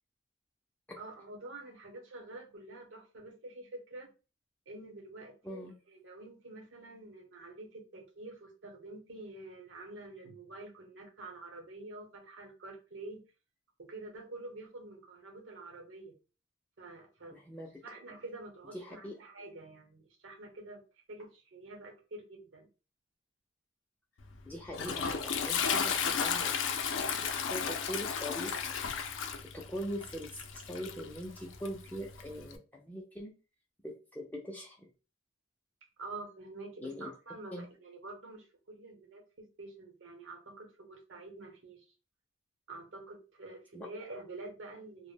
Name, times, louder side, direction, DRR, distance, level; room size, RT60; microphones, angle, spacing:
voice 1, 1.0-4.1 4.7-13.2 13.8-16.1 16.8-17.4 17.8-20.8 21.1-22.7 26.8-27.2 36.0-41.9 42.7-45.1, right 2 dB, 90° right, 2 dB, 0.8 m, -47 dB
voice 2, 17.3-17.7 18.7-19.2 24.5-26.6 26.9-28.6 29.5-33.3 33.8-34.8 36.8-37.1 37.5-37.7 43.7-43.9, equal, 10° left, -1 dB, 0.3 m, -42 dB
Toilet flush, 24.2-32.6, left 6 dB, 80° left, 0.4 m, -34 dB
2.1 x 2.0 x 3.3 m, 0.32 s
head